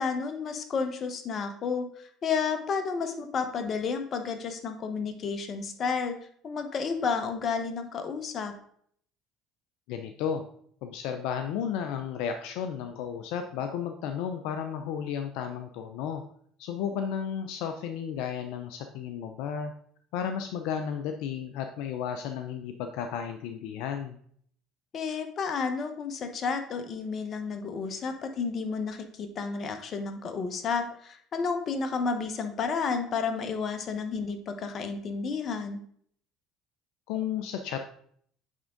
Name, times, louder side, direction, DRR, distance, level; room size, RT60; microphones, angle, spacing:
voice 1, 0.0-6.1 6.4-8.5 24.9-35.8, left 5 dB, 45° left, 7 dB, 1.0 m, -31 dB
voice 2, 9.9-10.4 10.8-16.2 16.6-19.7 20.1-24.2 37.1-37.8, left 8 dB, 75° left, 6 dB, 0.5 m, -33 dB
8.5 x 3.6 x 3.8 m, 0.62 s
supercardioid pair, 80°, 0 cm